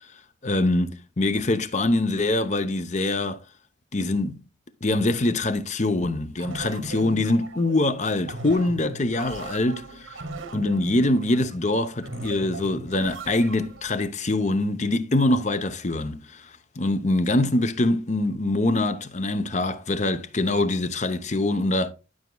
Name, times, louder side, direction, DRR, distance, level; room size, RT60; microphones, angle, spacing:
voice 1, 0.4-3.4 3.9-4.4 4.8-10.2 10.5-16.5 16.8-21.9, left 2 dB, 35° left, 0.7 m, -24 dB
sound 1, 6.4-13.9, right 2 dB, 85° right, 1.2 m, -38 dB
12.5 x 6.0 x 2.3 m
head